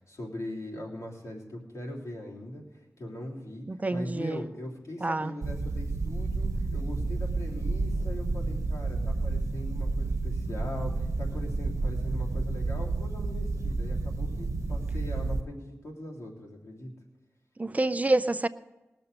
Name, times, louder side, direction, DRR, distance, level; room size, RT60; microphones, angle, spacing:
voice 1, 0.0-16.9, left 1 dB, 75° left, 3.2 m, -40 dB
voice 2, 3.7-4.5 5.0-5.3 17.6-18.5, right 2 dB, 30° right, 0.4 m, -27 dB
sound 1, 5.4-15.4, right 3 dB, 85° right, 0.9 m, -30 dB
20.0 x 6.9 x 6.8 m
wide cardioid pair, 75°, 5 cm